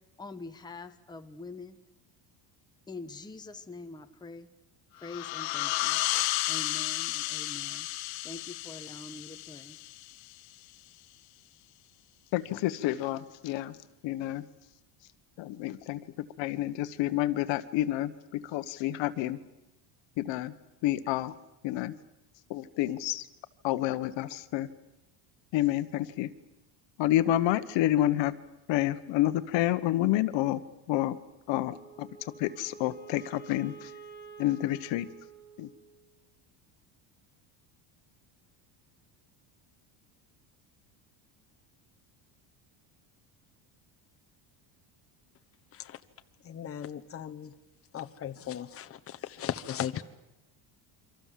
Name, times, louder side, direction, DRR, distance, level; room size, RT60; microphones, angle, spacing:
voice 1, 0.2-1.8 2.9-4.5 4.9-6.0 6.5-7.9 8.2-9.8, left 3 dB, 10° left, 6 dB, 1.2 m, -44 dB
sound 1, 5.0-10.4, left 19 dB, 80° left, 1.4 m, -33 dB
voice 2, 12.3-13.8 14.0-14.4 15.4-16.0 16.4-19.4 20.2-20.5 20.8-21.3 21.6-21.9 22.5-23.2 23.6-24.7 25.5-26.3 27.0-28.3 28.7-30.6 30.9-31.2 31.5-32.1 32.4-33.9 34.4-35.1 35.6-35.7, left 14 dB, 65° left, 12 dB, 1.4 m, -29 dB
Wind instrument woodwind instrument, 31.7-36.1, right 6 dB, 20° right, 2.8 m, -49 dB
voice 3, 46.4-47.5 47.9-50.0, left 10 dB, 30° left, 8 dB, 1.2 m, -37 dB
28.5 x 25.0 x 7.6 m, 0.96 s
cardioid pair, 150°, 47 cm